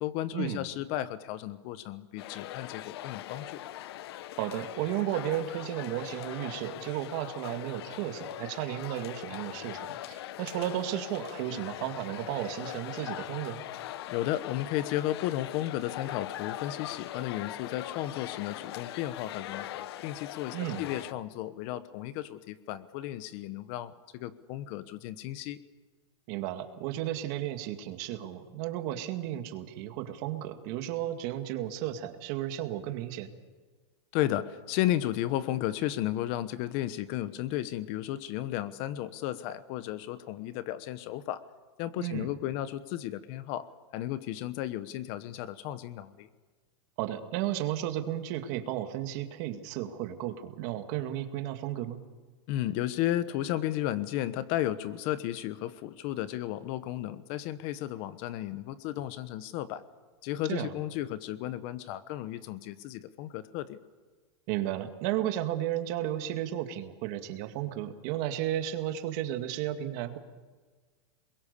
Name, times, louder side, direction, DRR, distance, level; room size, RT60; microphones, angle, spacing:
voice 1, 0.0-3.6 14.1-25.6 34.1-41.4 41.8-46.3 52.5-59.8 60.2-63.8, left 13 dB, 40° left, 14 dB, 1.1 m, -34 dB
sound 1, 2.2-21.1, left 13 dB, 65° left, 0.9 m, -41 dB
voice 2, 4.4-13.6 20.5-20.8 26.3-33.3 42.0-42.3 47.0-52.0 60.5-60.7 64.5-70.2, right 12 dB, 45° right, 7 dB, 2.2 m, -33 dB
28.5 x 22.0 x 6.9 m, 1.4 s
supercardioid pair, 155°, 14 cm